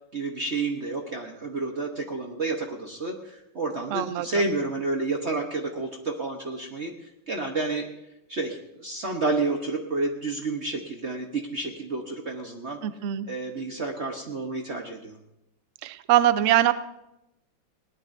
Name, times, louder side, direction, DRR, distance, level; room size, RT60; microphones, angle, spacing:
voice 1, 0.1-6.9 7.3-7.9 8.3-12.8 13.3-15.2, right 3 dB, 40° right, 2 dB, 1.1 m, -30 dB
voice 2, 3.9-4.3 12.8-13.3 15.8-16.7, right 13 dB, 85° right, 13 dB, 0.6 m, -22 dB
20.5 x 18.0 x 2.7 m, 0.87 s
omnidirectional pair, 2.2 m